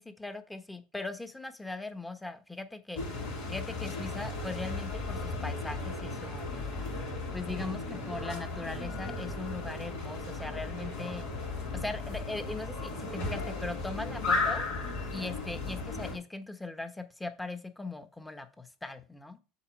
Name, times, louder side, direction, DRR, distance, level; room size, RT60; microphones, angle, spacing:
voice 1, 0.0-3.0 3.5-6.7 7.3-11.3 11.7-14.7 15.1-19.4, left 2 dB, 10° left, 8 dB, 1.1 m, -39 dB
sound 1, 3.0-16.2, left 3 dB, 75° left, 3.4 m, -35 dB
7.2 x 4.3 x 5.2 m, 0.33 s
hypercardioid pair, 80°, 0 cm